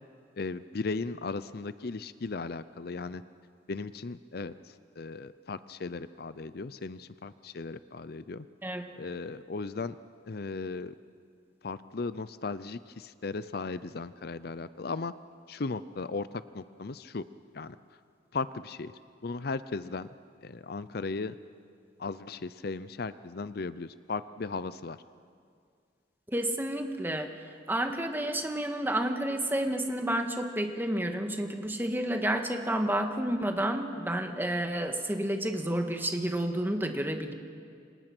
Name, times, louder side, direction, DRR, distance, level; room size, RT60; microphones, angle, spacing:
voice 1, 0.4-3.2 3.7-4.5 5.0-8.5 9.0-10.0 10.3-10.9 11.6-15.1 15.5-17.3 17.5-17.8 18.3-18.9 19.2-20.1 20.4-21.3 22.0-25.0, left 4 dB, 60° left, 14 dB, 0.6 m, -36 dB
voice 2, 26.3-27.3 27.7-37.3, right 1 dB, 10° right, 4 dB, 1.8 m, -30 dB
28.0 x 25.5 x 6.1 m, 2.2 s
head